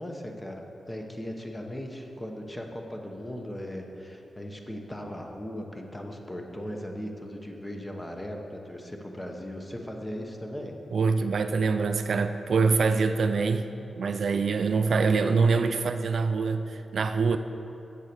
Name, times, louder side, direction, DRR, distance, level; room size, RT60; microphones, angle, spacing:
voice 1, 0.0-10.7, equal, 15° left, 2 dB, 1.0 m, -38 dB
voice 2, 10.9-13.7 14.0-17.4, right 4 dB, 60° right, 9 dB, 0.4 m, -24 dB
8.4 x 7.3 x 6.8 m, 2.9 s
wide cardioid pair, 135°, 0 cm